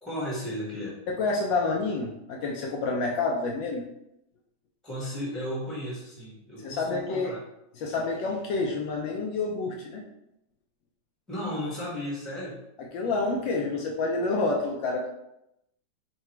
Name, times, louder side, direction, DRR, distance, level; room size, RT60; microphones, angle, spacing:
voice 1, 0.0-1.0 4.8-7.4 11.3-12.6, equal, ahead, -7 dB, 1.0 m, -34 dB
voice 2, 1.1-3.9 6.6-7.3 7.8-10.0 12.9-15.1, left 3 dB, 75° left, 0 dB, 1.2 m, -28 dB
3.9 x 2.2 x 4.2 m, 0.84 s
omnidirectional pair, 2.2 m